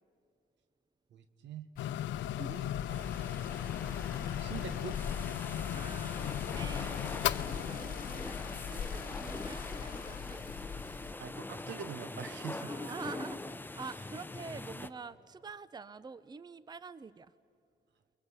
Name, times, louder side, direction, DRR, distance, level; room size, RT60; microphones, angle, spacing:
voice 1, 1.1-1.7 2.3-2.7 4.4-5.0 8.4-8.5 11.2-12.8, right 7 dB, 75° right, 12 dB, 1.4 m, -44 dB
sound 1, 1.7-11.1, left 7 dB, 50° left, 1.3 m, -42 dB
sound 2, 1.8-10.2, left 13 dB, 85° left, 0.7 m, -38 dB
voice 2, 2.4-2.7 5.7-7.3 7.7-10.4 12.6-17.3, right 5 dB, 20° right, 17 dB, 0.6 m, -47 dB
sound 3, 2.9-14.9, left 2 dB, 10° left, 0.8 m, -43 dB
29.5 x 23.0 x 8.2 m, 2.5 s
cardioid pair, 80°, 19 cm